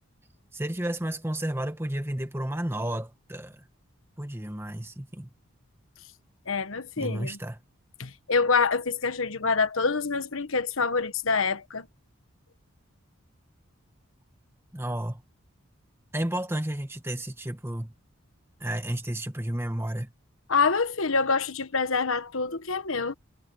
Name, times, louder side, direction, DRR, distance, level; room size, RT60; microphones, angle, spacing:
voice 1, 0.5-3.6 4.2-5.3 7.0-7.6 14.7-15.2 16.1-17.9 18.6-20.1, right 1 dB, 10° right, 1.4 m, -32 dB
voice 2, 6.5-7.4 8.0-11.9 20.5-23.1, left 4 dB, 75° left, 1.4 m, -26 dB
head